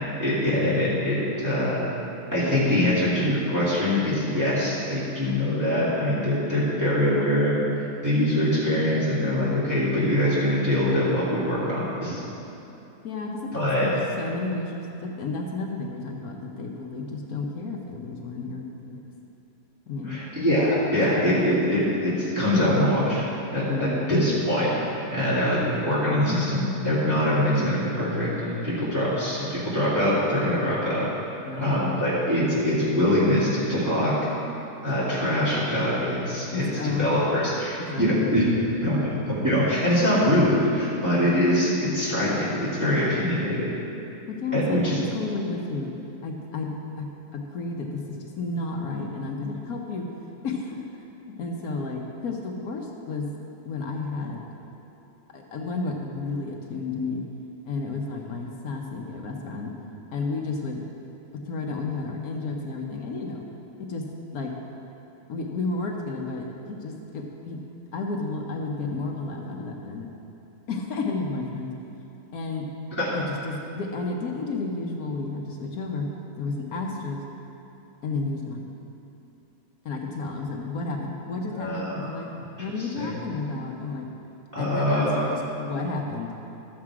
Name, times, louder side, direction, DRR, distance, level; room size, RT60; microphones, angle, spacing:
voice 1, 0.2-1.9 2.3-7.6 8.0-12.2 13.5-13.9 20.1-23.2 23.5-31.0 31.6-34.1 34.8-36.6 37.0-38.5 38.8-43.7 44.5-45.0 73.0-73.1 81.6-82.1 83.0-83.1 84.5-85.4, left 1 dB, 10° right, -11 dB, 2.3 m, -23 dB
voice 2, 13.0-19.0 19.9-20.2 23.7-24.0 25.2-25.4 31.5-31.9 36.5-37.2 37.8-38.3 44.3-45.9 46.2-47.1 47.3-50.1 50.4-53.3 53.6-54.5 55.3-57.2 57.6-59.7 60.1-60.8 61.5-63.4 63.9-64.0 64.3-64.6 65.3-67.6 67.9-70.1 70.7-71.7 72.3-72.7 73.1-76.1 76.4-77.2 78.0-78.6 79.8-82.3 82.6-84.1 84.6-86.3, left 3 dB, 70° left, 1 dB, 1.4 m, -32 dB
12.5 x 7.5 x 4.8 m, 2.8 s
omnidirectional pair, 1.6 m